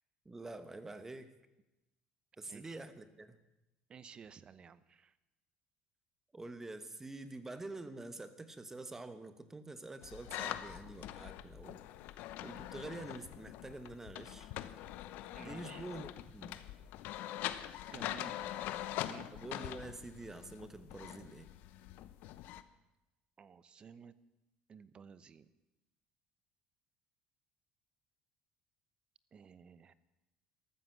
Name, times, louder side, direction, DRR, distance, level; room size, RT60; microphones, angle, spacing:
voice 1, 0.2-1.3 2.4-3.4 6.3-11.8 12.4-14.5 15.4-16.6 19.3-21.5, right 2 dB, 15° right, 11 dB, 1.2 m, -47 dB
voice 2, 2.5-2.8 3.9-5.2 15.3-15.8 17.9-18.8 19.1-19.3 23.4-24.1 24.7-25.5 29.3-29.9, right 6 dB, 30° right, 16 dB, 0.8 m, -54 dB
sound 1, 10.0-22.6, left 13 dB, 70° left, 0.9 m, -44 dB
13.5 x 13.5 x 7.6 m, 0.98 s
cardioid pair, 135°, 3 cm